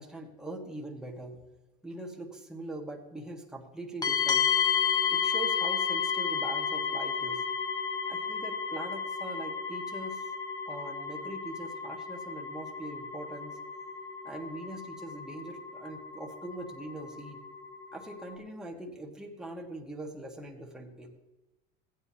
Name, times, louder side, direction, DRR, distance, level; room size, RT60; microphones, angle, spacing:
voice 1, 0.0-1.4 1.8-4.5 5.1-7.4 8.0-10.3 10.7-13.6 14.2-17.4 17.9-21.1, right 1 dB, 5° right, -1 dB, 1.6 m, -42 dB
sound 1, 4.0-18.3, left 6 dB, 20° left, 1.1 m, -32 dB
16.0 x 9.3 x 2.9 m, 1.0 s
supercardioid pair, 120°, 21 cm